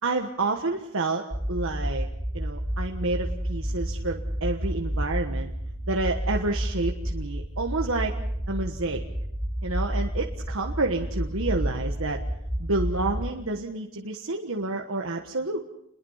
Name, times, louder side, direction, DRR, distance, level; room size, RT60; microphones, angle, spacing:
voice 1, 0.0-2.1 2.3-5.5 5.9-8.1 8.5-9.0 9.6-12.2 12.6-15.6, right 2 dB, 70° right, 2 dB, 1.4 m, -29 dB
sound 1, 1.3-13.3, equal, 5° right, 0.9 m, -30 dB
27.5 x 22.0 x 5.7 m, 0.82 s
head